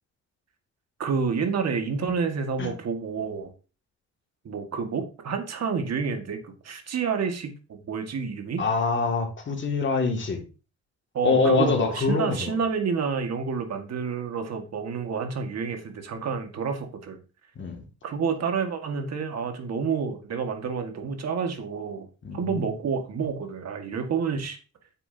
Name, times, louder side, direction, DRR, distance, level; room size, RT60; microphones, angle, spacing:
voice 1, 1.0-3.5 4.5-8.6 11.1-17.2 18.0-22.1 22.3-24.6, right 5 dB, 60° right, 1.9 m, -29 dB
voice 2, 8.6-10.4 11.2-12.6 17.6-17.8 22.2-22.7, left 4 dB, 40° left, 2.4 m, -25 dB
9.2 x 7.2 x 2.9 m
cardioid pair, 90°, 30 cm